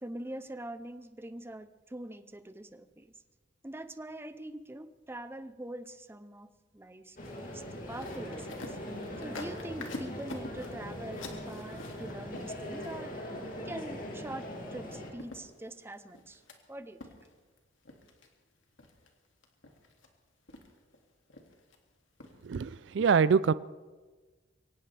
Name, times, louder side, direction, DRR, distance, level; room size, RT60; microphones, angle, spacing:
voice 1, 0.0-3.1 3.6-8.8 9.2-13.3 13.6-16.4 16.7-17.0, right 1 dB, 10° right, 11 dB, 0.7 m, -44 dB
sound 1, 7.2-13.3 14.8-14.9 15.2-16.6 17.0-17.6 17.8-18.3 18.8-19.1 19.4-20.1 20.5-21.0 21.3-21.8 22.2-22.4 22.7-22.8, left 2 dB, 90° left, 2.2 m, -47 dB
sound 2, 7.2-15.1, equal, 45° left, 2.7 m, -41 dB
voice 2, 22.4-23.5, right 6 dB, 65° right, 17 dB, 0.4 m, -25 dB
23.0 x 18.0 x 3.4 m, 1.3 s
head